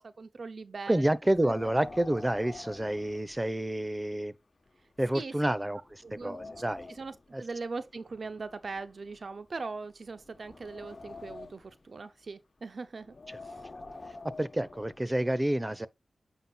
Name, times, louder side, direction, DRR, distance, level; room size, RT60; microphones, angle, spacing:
voice 1, 0.0-1.1 1.4-1.5 5.1-5.3 6.0-6.5 7.0-7.1 7.4-13.1 13.4-13.5, right 4 dB, 70° right, 0.7 m, -40 dB
voice 2, 0.9-4.3 5.0-6.9 7.3-7.4 13.3-13.4 14.4-15.9, right 1 dB, 20° right, 0.9 m, -29 dB
Wind, 1.2-3.9 4.2-4.3 5.0-5.1 5.6-7.2 8.1-9.6 10.1-11.8 13.0-15.1, left 3 dB, 55° left, 1.1 m, -47 dB
9.0 x 5.8 x 2.4 m
cardioid pair, 40°, 0 cm